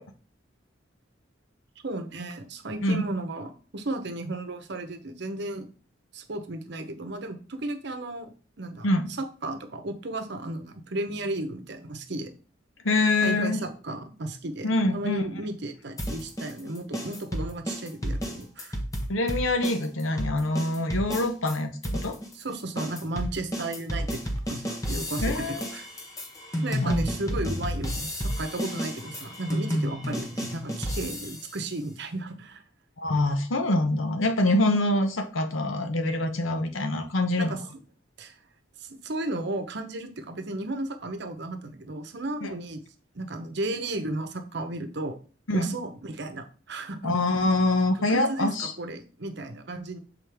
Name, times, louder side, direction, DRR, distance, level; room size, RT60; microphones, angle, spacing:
voice 1, 1.8-5.7 6.1-8.3 8.6-8.9 9.2-12.3 13.2-18.8 22.3-24.2 24.5-25.9 26.6-32.6 37.4-37.6 38.2-38.4 38.8-42.8 43.1-45.2 45.5-47.2 48.1-50.0, right 2 dB, 60° right, 7 dB, 0.9 m, -34 dB
voice 2, 12.8-13.6 14.6-15.2 19.1-22.2 25.2-25.7 26.8-27.0 33.0-37.5 42.4-42.5 45.5-45.7 47.0-48.7, left 2 dB, 85° left, 7 dB, 0.9 m, -25 dB
sound 1, 16.0-21.6 21.8-31.6, equal, 15° left, 0.9 m, -31 dB
7.5 x 4.0 x 3.5 m, 0.38 s
head